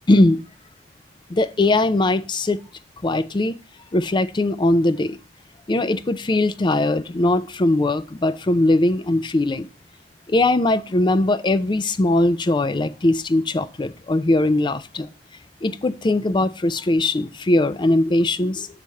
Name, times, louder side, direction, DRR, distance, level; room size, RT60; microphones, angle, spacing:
voice 1, 0.1-0.4 1.3-2.6 3.0-3.6 3.9-5.2 5.7-9.7 10.3-15.1 15.6-18.7, left 2 dB, 25° left, 0.4 m, -20 dB
6.9 x 3.4 x 6.2 m
head